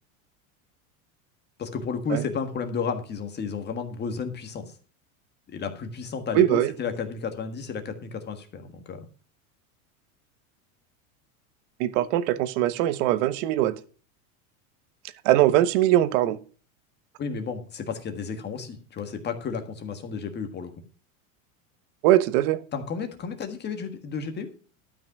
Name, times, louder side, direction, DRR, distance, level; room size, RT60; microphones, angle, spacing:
voice 1, 1.6-4.7 5.5-9.0 17.2-20.7 22.7-24.5, left 5 dB, 25° left, 7 dB, 1.5 m, -32 dB
voice 2, 6.3-6.7 11.8-13.8 15.2-16.4 22.0-22.6, right 13 dB, 60° right, 15 dB, 1.1 m, -21 dB
12.5 x 5.9 x 5.9 m, 0.39 s
supercardioid pair, 150°, 42 cm